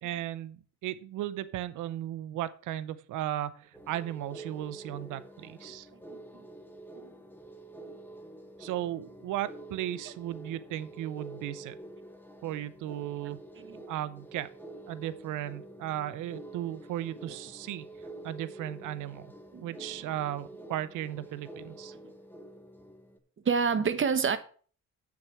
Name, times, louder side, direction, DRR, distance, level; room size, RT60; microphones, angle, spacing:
voice 1, 0.0-5.9 8.6-11.8 12.4-13.4 13.9-14.5 14.9-17.9 18.2-19.3 19.6-21.9, right 13 dB, 85° right, 0.7 m, -36 dB
sound 1, 3.7-23.2, right 1 dB, 5° left, 1.6 m, -48 dB
voice 2, 13.2-13.8 19.5-19.7 23.4-24.4, right 6 dB, 40° right, 1.3 m, -28 dB
7.6 x 6.1 x 7.5 m
cardioid pair, 90°, 30 cm